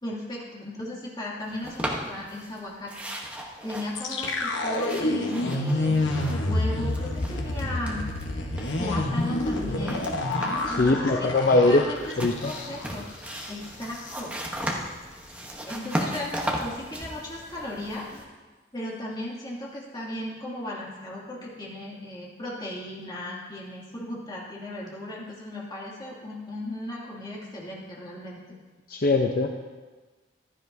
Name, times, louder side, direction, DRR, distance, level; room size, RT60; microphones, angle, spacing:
voice 1, 0.0-2.9 3.6-6.0 6.4-8.0 8.8-10.0 10.7-12.1 12.4-13.0 13.5-14.3 15.6-18.1 18.7-28.4, left 1 dB, 25° left, -6 dB, 2.6 m, -36 dB
sound 1, 1.6-2.6 2.9-6.6 6.9-8.3 8.6-10.8 11.9-18.2, equal, 5° right, 1.0 m, -36 dB
sound 2, 3.9-13.0 13.3-13.4 13.8-14.2, left 1 dB, 85° left, 1.2 m, -28 dB
voice 2, 10.6-11.8 12.2-12.5 28.9-29.5, left 2 dB, 50° left, 2 dB, 0.6 m, -21 dB
15.0 x 11.5 x 2.8 m, 1.3 s
head